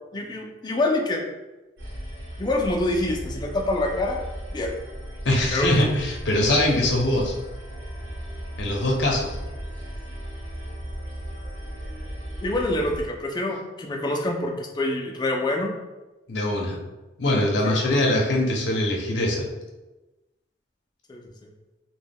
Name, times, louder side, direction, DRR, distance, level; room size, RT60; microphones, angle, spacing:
voice 1, 0.1-1.2 2.4-4.2 4.5-4.7 5.5-5.7 12.4-15.7 17.6-18.1 21.1-21.2, left 2 dB, 25° left, 1 dB, 0.3 m, -26 dB
sound 1, 1.8-13.0, equal, 70° right, 0.7 m, -36 dB
voice 2, 5.2-7.4 8.6-9.4 16.3-16.8 17.2-19.5, left 1 dB, 70° left, 0 dB, 0.6 m, -22 dB
2.1 x 2.1 x 3.4 m, 1.1 s
head